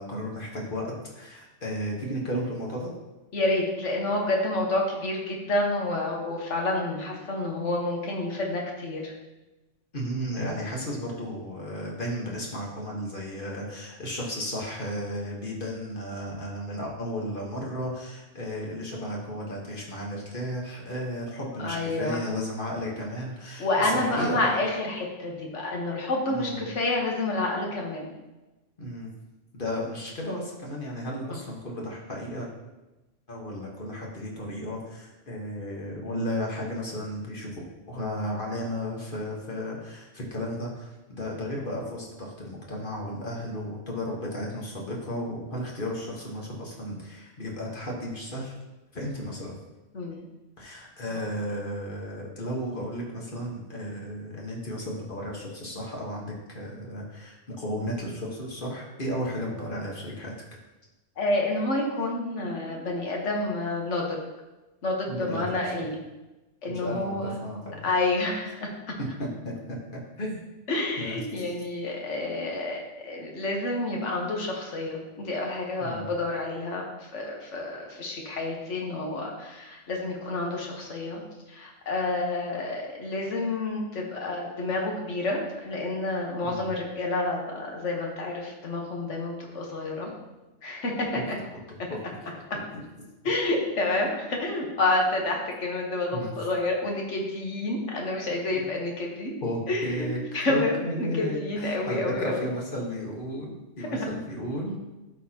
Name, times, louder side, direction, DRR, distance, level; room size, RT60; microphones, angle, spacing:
voice 1, 0.0-2.9 9.9-24.5 26.3-26.6 28.8-29.1 29.5-32.5 33.3-37.6 37.9-48.5 48.9-49.5 50.6-60.3 65.1-65.6 66.7-67.9 69.2-70.4 71.0-71.2 75.8-76.1 86.4-86.6 91.9-92.1 96.1-96.3 98.5-98.6 99.4-100.2 100.5-104.8, equal, 45° left, -2 dB, 1.5 m, -34 dB
voice 2, 3.3-9.1 21.6-22.2 23.6-28.1 31.3-31.4 49.9-50.3 51.1-51.2 61.2-64.2 64.8-66.0 66.6-67.3 67.8-68.9 70.7-81.2 81.5-90.1 90.6-91.2 93.2-99.3 99.7-100.1 100.3-102.5 103.8-104.1, left 2 dB, 75° left, 0 dB, 1.6 m, -29 dB
12.0 x 4.3 x 2.9 m, 1.1 s
omnidirectional pair, 1.3 m